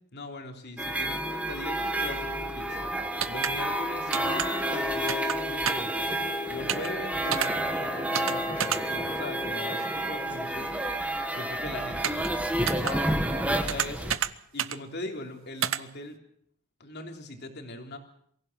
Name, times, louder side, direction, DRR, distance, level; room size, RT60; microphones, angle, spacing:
voice 1, 0.1-2.9 3.3-6.1 6.5-10.9 11.3-12.5 12.8-14.2 14.5-16.2 16.8-18.0, left 1 dB, 50° left, 4 dB, 3.3 m, -40 dB
sound 1, 0.8-14.2, right 1 dB, 5° right, 1.8 m, -30 dB
sound 2, 3.2-3.5 4.1-4.5 5.1-5.4 5.6-5.9 6.7-6.9 7.3-7.5 8.1-8.3 8.6-8.8 12.0-12.3 12.7-12.9 13.7-14.3 14.6-14.8 15.6-15.8, right 9 dB, 65° right, 0.8 m, -28 dB
23.5 x 16.0 x 7.4 m, 0.65 s
head